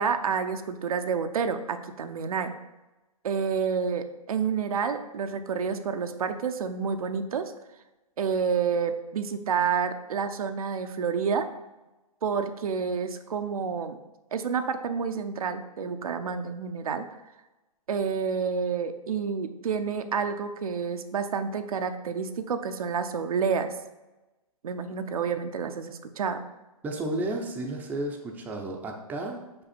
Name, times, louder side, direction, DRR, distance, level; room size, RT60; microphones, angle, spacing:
voice 1, 0.0-2.5 3.2-7.5 8.2-11.5 12.2-14.0 14.3-17.1 17.9-23.7 24.6-26.4, right 6 dB, 75° right, 8 dB, 0.7 m, -29 dB
voice 2, 26.8-29.6, right 2 dB, 10° right, 1 dB, 0.6 m, -33 dB
5.5 x 4.9 x 4.3 m, 1.0 s
hypercardioid pair, 140°, 19 cm